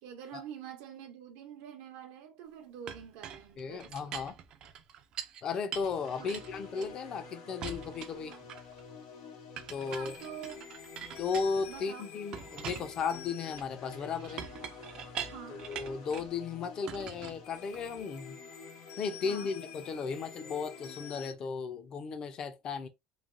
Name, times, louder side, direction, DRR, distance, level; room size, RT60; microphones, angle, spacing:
voice 1, 0.0-4.1 6.2-6.3 9.8-10.6 11.7-12.0 15.3-15.6 19.2-19.5, right 9 dB, 85° right, 0.7 m, -46 dB
Chink clink, 2.9-5.4 5.7-7.2 7.6-8.8 9.6-11.9 12.3-16.4 16.9-18.0, right 8 dB, 40° right, 0.3 m, -44 dB
voice 2, 3.6-4.4 5.4-8.4 9.7-10.1 11.2-14.5 15.5-18.4 19.0-22.9, left 5 dB, 35° left, 0.5 m, -35 dB
sound 1, 5.8-21.3, left 5 dB, 80° left, 1.3 m, -48 dB
3.1 x 2.2 x 2.5 m
cardioid pair, 165°, 2 cm